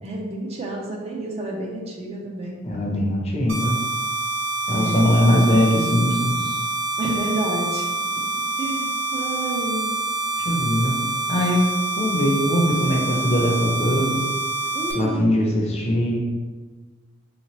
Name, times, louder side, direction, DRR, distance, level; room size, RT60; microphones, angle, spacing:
voice 1, 0.0-2.6 4.7-5.1 7.0-7.9 8.2-9.8 14.7-15.4, right 1 dB, 30° right, 0 dB, 0.5 m, -30 dB
voice 2, 2.6-3.7 4.7-6.6 10.5-10.9 11.3-11.7 12.0-14.2 14.9-16.2, equal, 30° left, -1 dB, 0.6 m, -21 dB
sound 1, 3.5-14.9, right 3 dB, 50° right, 0.9 m, -26 dB
3.6 x 2.9 x 2.9 m, 1.3 s
head